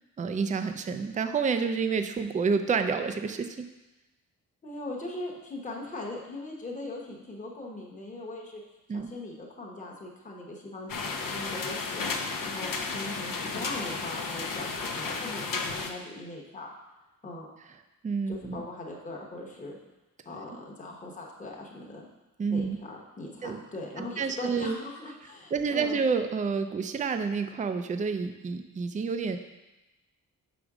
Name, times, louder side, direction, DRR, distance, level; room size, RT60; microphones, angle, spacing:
voice 1, 0.2-3.7 8.9-9.1 18.0-18.6 22.4-22.8 23.4-23.6 24.0-24.8 25.5-29.4, right 5 dB, 25° right, 8 dB, 0.3 m, -29 dB
voice 2, 4.6-8.6 8.9-10.9 11.2-12.0 12.4-16.7 17.2-17.5 18.3-19.8 20.2-22.1 22.5-26.1, left 2 dB, 25° left, -2 dB, 1.0 m, -40 dB
sound 1, 10.9-15.9, left 4 dB, 75° left, 0.7 m, -33 dB
6.2 x 5.1 x 4.8 m, 1.0 s
wide cardioid pair, 155°, 33 cm